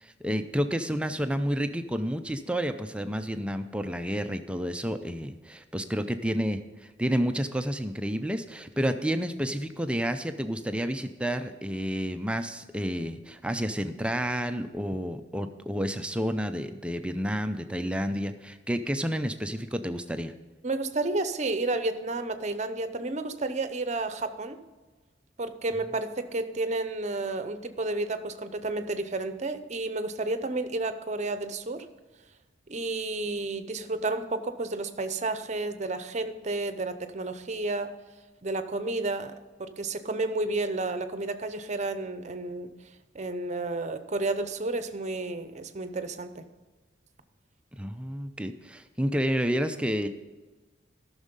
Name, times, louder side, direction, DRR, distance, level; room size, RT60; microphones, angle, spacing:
voice 1, 0.0-20.3 47.8-50.1, equal, 5° right, 8 dB, 0.4 m, -30 dB
voice 2, 20.6-24.6 25.4-31.9 32.7-37.9 38.4-39.3 39.6-42.7 43.1-46.4, right 2 dB, 40° right, 10 dB, 0.7 m, -31 dB
13.5 x 6.3 x 5.3 m, 1.3 s
head